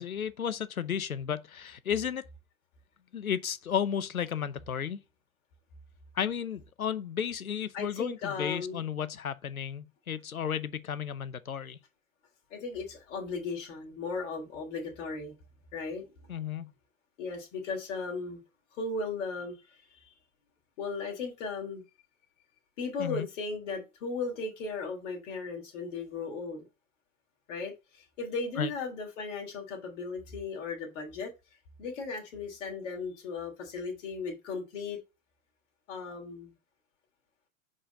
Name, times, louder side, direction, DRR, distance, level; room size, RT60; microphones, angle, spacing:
voice 1, 0.0-2.2 3.1-5.0 6.1-11.8 16.3-16.7 23.0-23.3 28.6-28.7, left 8 dB, 90° left, 0.8 m, -33 dB
voice 2, 7.7-8.8 12.5-15.3 15.7-16.0 17.2-18.4 18.8-19.5 20.8-21.8 22.8-26.6 27.5-31.3 31.8-35.0 35.9-36.5, left 4 dB, 60° left, 3.3 m, -36 dB
5.5 x 5.1 x 5.2 m
hypercardioid pair, 100°, 41 cm